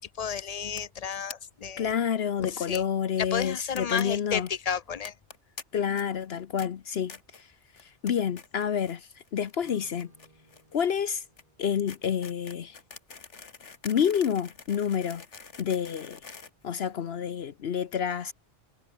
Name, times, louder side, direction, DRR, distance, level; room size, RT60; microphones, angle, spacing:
voice 1, 0.0-1.9 2.4-2.8 3.3-5.1, left 7 dB, 40° left, 0.6 m, -32 dB
sound 1, 0.8-1.0 1.3-1.4 1.6-1.7 1.9-2.0 2.7-2.8 3.4-4.0 4.3-4.5 5.0-5.6 5.9-6.3 6.6-6.7 7.1-7.4 7.8-8.1 8.4-9.0 9.2-17.3, left 5 dB, 85° left, 2.2 m, -46 dB
voice 2, 1.8-4.5 5.7-7.5 7.8-10.1 10.7-11.2 11.6-12.8 13.8-15.2 15.6-16.2 16.6-18.3, left 8 dB, 65° left, 1.0 m, -29 dB
Acoustic guitar / Strum, 9.6-13.6, right 1 dB, 30° right, 6.1 m, -62 dB
omnidirectional pair, 1.2 m